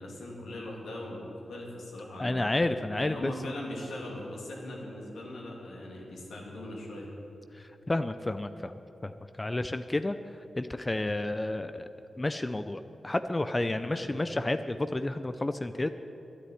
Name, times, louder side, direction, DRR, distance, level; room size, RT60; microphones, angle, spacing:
voice 1, 0.0-7.1 13.9-14.2, left 1 dB, 85° left, -3 dB, 2.7 m, -40 dB
voice 2, 2.2-3.3 7.5-9.1 9.4-10.2 10.6-11.9 12.2-15.9, left 2 dB, 25° left, 10 dB, 0.5 m, -31 dB
9.8 x 9.7 x 9.5 m, 3.0 s
cardioid pair, 50°, 0 cm